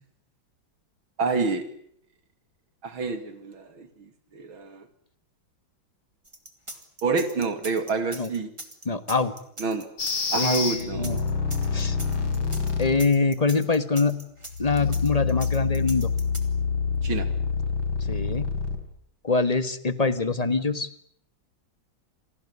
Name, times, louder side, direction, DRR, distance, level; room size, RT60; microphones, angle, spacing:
voice 1, 1.2-1.7 2.8-4.9 7.0-8.5 9.6-9.9 10.3-11.2 17.0-17.3, right 4 dB, 80° right, 10 dB, 3.4 m, -28 dB
sound 1, 6.2-16.4, right 1 dB, 15° right, 2.7 m, -41 dB
voice 2, 8.8-9.3 10.3-11.2 11.7-12.0 12.8-14.2 14.6-16.1 18.1-18.5 19.2-20.9, left 4 dB, 20° left, 13 dB, 1.3 m, -24 dB
sound 2, 10.0-13.1 14.5-18.8, left 5 dB, 85° left, 4.3 m, -27 dB
28.5 x 19.0 x 9.7 m, 0.65 s
omnidirectional pair, 2.2 m